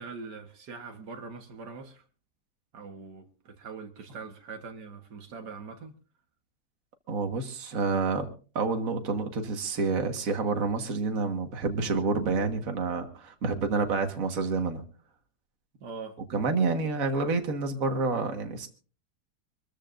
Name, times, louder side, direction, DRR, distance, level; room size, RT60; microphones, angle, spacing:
voice 1, 0.0-2.1 2.7-5.9 15.8-16.2, right 4 dB, 80° right, 2.0 m, -42 dB
voice 2, 7.1-8.3 8.6-14.8 16.3-18.7, right 4 dB, 55° right, 2.0 m, -28 dB
25.5 x 14.0 x 2.6 m
omnidirectional pair, 1.8 m